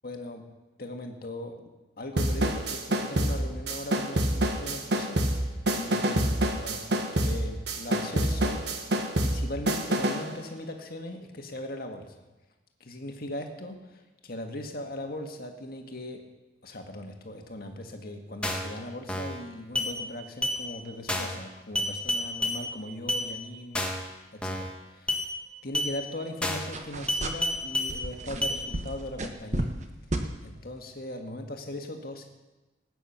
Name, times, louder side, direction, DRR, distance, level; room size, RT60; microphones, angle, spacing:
voice 1, 0.0-0.5 0.8-1.7 2.0-6.8 7.2-8.7 9.2-12.3 12.8-16.3 16.6-25.2 25.6-29.7 30.4-32.3, left 1 dB, 55° left, 3 dB, 1.8 m, -39 dB
sound 1, 2.2-10.3, right 1 dB, 60° right, 1.4 m, -27 dB
sound 2, 18.4-18.7 19.1-19.4 19.8-19.9 20.4-20.6 21.1-21.4 21.8-22.6 23.1-23.2 23.7-24.1 24.4-24.7 25.1-25.2 25.7-25.9 26.4-26.7 27.1-27.9 28.4-28.6, left 1 dB, 5° left, 1.6 m, -29 dB
sound 3, 26.7-27.6 27.9-29.8 30.1-30.3, right 1 dB, 40° right, 1.2 m, -32 dB
19.5 x 9.1 x 5.9 m, 1.1 s
head